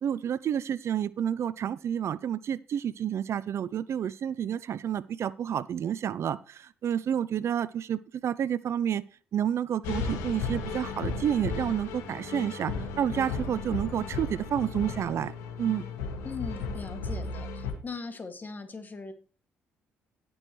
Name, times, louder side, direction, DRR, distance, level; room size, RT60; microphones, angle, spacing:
voice 1, 0.0-9.0 9.3-15.3 15.6-15.8, right 9 dB, 60° right, 19 dB, 0.5 m, -30 dB
sound 1, 9.8-17.7, left 4 dB, 85° left, 2.0 m, -35 dB
voice 2, 16.2-19.1, left 4 dB, 35° left, 7 dB, 2.2 m, -40 dB
17.0 x 6.2 x 3.2 m, 0.38 s
supercardioid pair, 60°, 5 cm